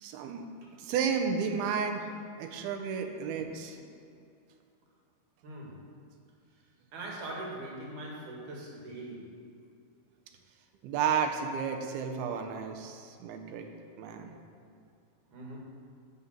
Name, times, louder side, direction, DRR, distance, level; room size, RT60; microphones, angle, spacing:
voice 1, 0.0-0.4 0.8-2.1 2.4-3.8 10.8-13.7 14.0-14.4, right 6 dB, 80° right, 5 dB, 2.7 m, -32 dB
voice 2, 5.4-5.9 6.9-9.5 15.3-15.6, right 1 dB, 60° right, -2 dB, 3.1 m, -42 dB
11.0 x 5.5 x 7.3 m, 2.4 s
omnidirectional pair, 4.4 m